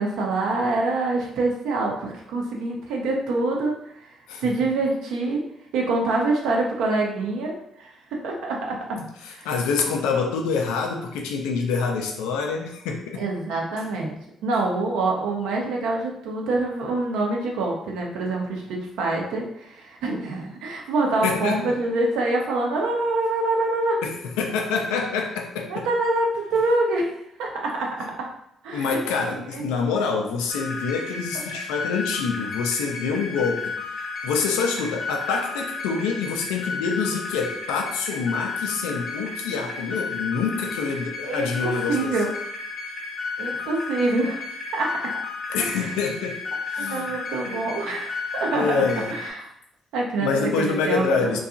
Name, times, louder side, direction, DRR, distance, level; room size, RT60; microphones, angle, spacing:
voice 1, 0.0-3.7 4.0-4.1 4.4-5.4 5.7-7.9 8.2-9.0 9.4-9.5 13.2-14.2 14.4-24.0 25.7-27.1 27.4-28.3 28.6-29.6 41.3-42.3 43.4-45.1 45.6-45.9 46.8-48.7 49.1-49.5 49.9-51.4, right 2 dB, 75° right, -1 dB, 0.6 m, -25 dB
voice 2, 9.2-13.2 21.2-21.8 24.0-25.9 28.7-33.8 34.2-42.1 45.5-46.4 46.7-47.1 47.4-47.8 48.5-49.2 50.2-51.4, left 5 dB, 85° left, 2 dB, 0.4 m, -26 dB
sound 1, 30.5-49.3, left 4 dB, 70° left, 0.8 m, -33 dB
2.7 x 2.3 x 2.4 m, 0.77 s
hypercardioid pair, 50°, 0 cm